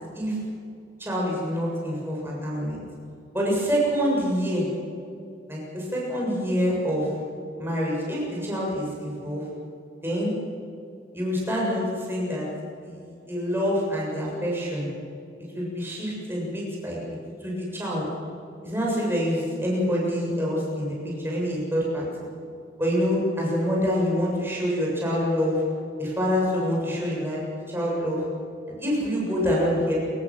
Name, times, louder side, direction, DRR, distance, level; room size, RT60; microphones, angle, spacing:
voice 1, 1.0-2.8 3.3-4.7 5.5-7.1 7.6-9.5 10.0-10.3 11.1-12.5 12.8-14.9 15.5-17.0 17.4-18.1 18.6-22.0 22.8-25.6 26.0-27.4 27.7-28.2 28.8-30.0, equal, 10° right, -4 dB, 7.3 m, -26 dB
27.5 x 15.5 x 7.5 m, 2.5 s
head